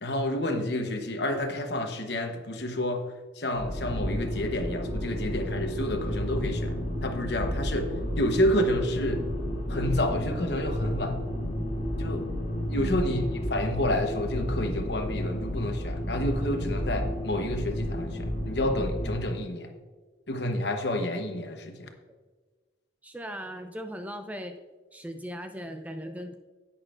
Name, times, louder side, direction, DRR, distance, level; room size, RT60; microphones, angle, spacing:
voice 1, 0.0-3.1 3.3-9.2 9.7-11.1 12.0-12.3 12.7-19.7 20.3-21.9, left 1 dB, 60° left, 5 dB, 1.0 m, -29 dB
sound 1, 3.5-19.2, equal, 40° left, 2.4 m, -31 dB
voice 2, 12.7-13.2 23.0-24.5 24.9-26.3, equal, 10° right, 7 dB, 0.4 m, -38 dB
11.0 x 8.6 x 2.5 m, 1.4 s
head